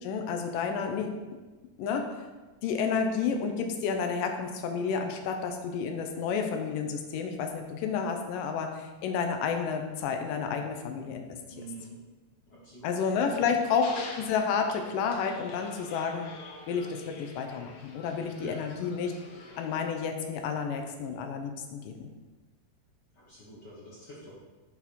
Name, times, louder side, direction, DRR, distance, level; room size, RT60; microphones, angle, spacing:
voice 1, 0.0-1.1 1.8-2.1 2.6-11.4 12.8-16.3 16.7-19.1 19.6-22.1, left 6 dB, 85° left, 5 dB, 2.4 m, -30 dB
voice 2, 11.5-12.0 12.5-12.9 13.2-13.4 18.4-18.6 23.1-24.3, right 2 dB, 45° left, -6 dB, 1.4 m, -47 dB
sound 1, 13.5-19.9, left 3 dB, 65° left, 1.8 m, -47 dB
7.1 x 5.8 x 4.2 m, 1.2 s
omnidirectional pair, 3.7 m